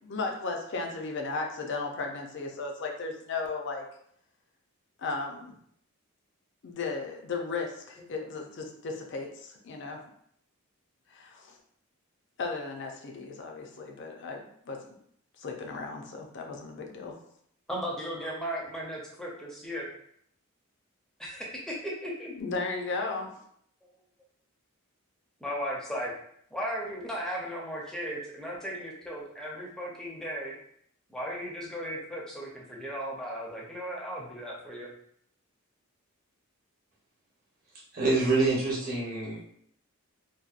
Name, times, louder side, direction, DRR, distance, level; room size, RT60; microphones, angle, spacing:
voice 1, 0.0-3.8 5.0-5.5 6.6-10.0 11.1-11.6 12.4-14.8 15.4-17.2 22.3-23.4, left 3 dB, 55° left, 2 dB, 0.4 m, -35 dB
voice 2, 17.7-19.9 21.2-21.6 21.8-22.3 25.4-26.1 26.5-30.5 31.1-34.9, equal, 5° left, -3 dB, 0.5 m, -36 dB
voice 3, 37.9-39.4, right 3 dB, 45° right, -5 dB, 0.9 m, -26 dB
2.7 x 2.2 x 2.4 m, 0.67 s
head